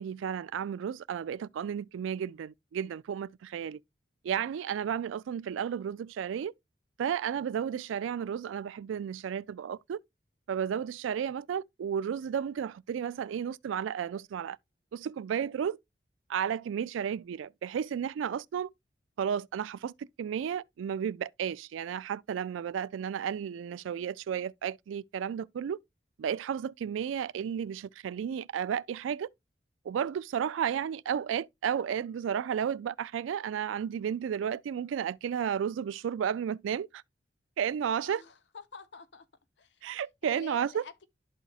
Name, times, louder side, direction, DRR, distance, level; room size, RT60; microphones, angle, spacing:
voice 1, 0.0-3.8 4.2-6.5 7.0-10.0 10.5-14.6 14.9-15.8 16.3-18.7 19.2-25.8 26.2-29.3 29.9-36.9 37.6-38.2 39.8-40.8, right 8 dB, 85° right, 0.3 m, -33 dB
voice 2, 38.0-39.3 39.6-41.1, left 4 dB, 70° left, 0.7 m, -48 dB
12.0 x 4.1 x 2.3 m
head